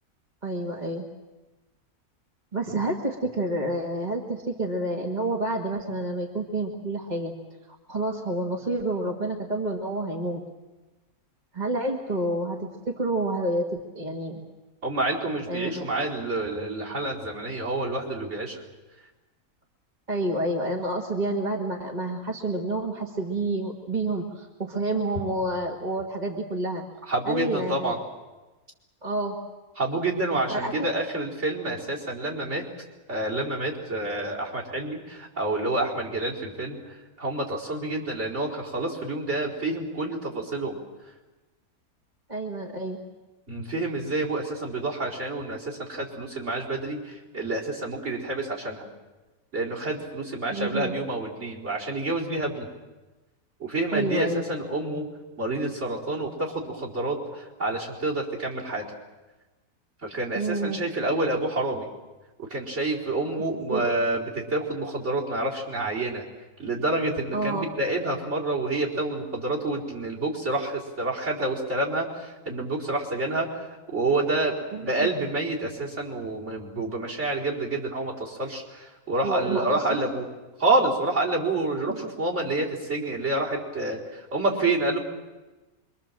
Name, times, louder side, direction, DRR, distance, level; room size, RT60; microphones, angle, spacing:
voice 1, 0.4-1.1 2.5-7.3 7.9-10.4 11.5-14.4 15.5-16.1 20.1-26.8 27.3-27.9 29.0-29.4 30.5-30.7 42.3-43.0 50.5-50.9 53.9-54.5 60.3-60.8 63.7-63.9 67.3-67.7 74.7-75.1 79.2-79.8 81.9-82.0, right 2 dB, 30° right, 0 dB, 1.9 m, -29 dB
voice 2, 14.8-18.6 27.1-28.0 29.8-32.6 33.1-40.8 43.5-48.9 49.5-52.7 53.6-55.1 55.4-58.8 60.0-61.9 62.4-66.2 66.6-74.5 74.8-80.2 80.6-85.0, right 2 dB, 50° right, 0 dB, 4.7 m, -28 dB
25.5 x 24.0 x 7.5 m, 1.2 s
omnidirectional pair, 1.5 m